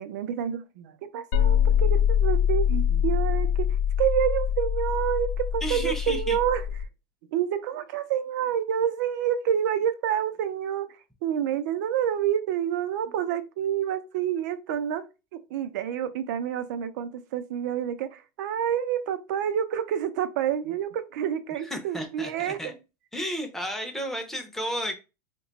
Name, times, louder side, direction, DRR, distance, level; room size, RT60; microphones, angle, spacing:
voice 1, 0.0-3.7 4.0-6.6 7.3-15.0 15.3-22.7, right 9 dB, 75° right, 0.5 m, -28 dB
sound 1, 1.3-6.8, left 9 dB, 75° left, 0.4 m, -24 dB
voice 2, 5.6-6.4 21.6-22.7 23.1-24.9, equal, 5° left, 0.5 m, -32 dB
2.8 x 2.2 x 3.9 m
supercardioid pair, 175°, 10 cm